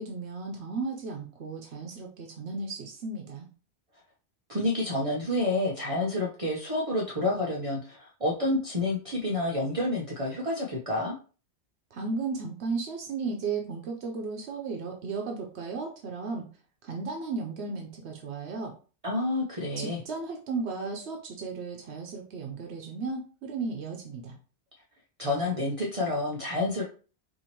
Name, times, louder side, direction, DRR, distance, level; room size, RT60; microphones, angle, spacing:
voice 1, 0.0-3.5 11.9-16.5 16.8-18.7 19.8-24.4, right 4 dB, 85° right, 2 dB, 1.0 m, -35 dB
voice 2, 4.5-11.2 19.0-20.0 25.2-26.8, left 2 dB, 35° right, -2 dB, 0.7 m, -29 dB
4.5 x 2.8 x 2.9 m, 0.37 s
omnidirectional pair, 1.1 m